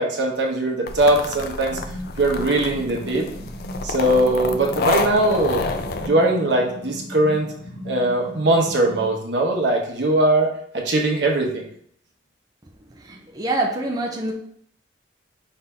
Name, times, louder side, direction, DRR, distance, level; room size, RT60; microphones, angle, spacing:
voice 1, 0.0-1.8 2.2-3.3 3.8-5.7 6.0-7.5 7.8-11.7, right 1 dB, 70° right, 0 dB, 1.0 m, -20 dB
sound 1, 0.9-6.1, left 3 dB, 55° left, 0.4 m, -28 dB
sound 2, 1.7-9.1, equal, 80° left, 1.1 m, -37 dB
voice 2, 12.9-14.3, right 2 dB, 20° right, -1 dB, 0.5 m, -26 dB
5.6 x 2.7 x 3.5 m, 0.65 s
head